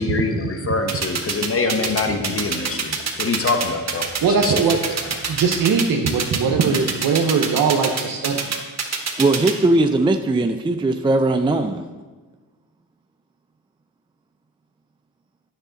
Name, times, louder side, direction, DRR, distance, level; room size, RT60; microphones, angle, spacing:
voice 1, 0.0-4.1 4.4-4.6 5.2-5.4, left 3 dB, 40° left, 6 dB, 1.2 m, -24 dB
sound 1, 0.9-9.5, right 6 dB, 45° right, 1.4 m, -24 dB
voice 2, 4.2-4.9 5.3-8.4, right 5 dB, 70° right, 1 dB, 0.9 m, -20 dB
voice 3, 9.2-11.9, right 2 dB, 15° right, 6 dB, 0.5 m, -19 dB
8.8 x 6.8 x 3.9 m, 1.3 s
supercardioid pair, 60°, 36 cm